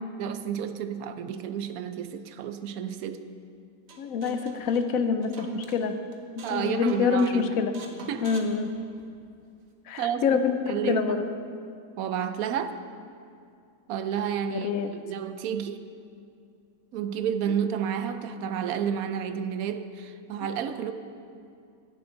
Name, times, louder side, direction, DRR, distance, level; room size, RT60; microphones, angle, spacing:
voice 1, 0.2-3.2 6.4-7.6 8.0-8.3 10.0-10.4 10.7-11.0 12.0-12.8 13.9-15.8 16.9-20.9, right 8 dB, 70° right, 10 dB, 0.9 m, -31 dB
sound 1, 3.9-5.8 6.1-6.6 6.9-7.3 7.7-9.3, right 4 dB, 50° right, 1.3 m, -47 dB
voice 2, 4.0-6.0 6.4-7.7 8.2-8.7 9.9-11.2 14.5-14.9, left 5 dB, 65° left, 8 dB, 0.9 m, -26 dB
15.5 x 10.5 x 3.9 m, 2.4 s
omnidirectional pair, 2.0 m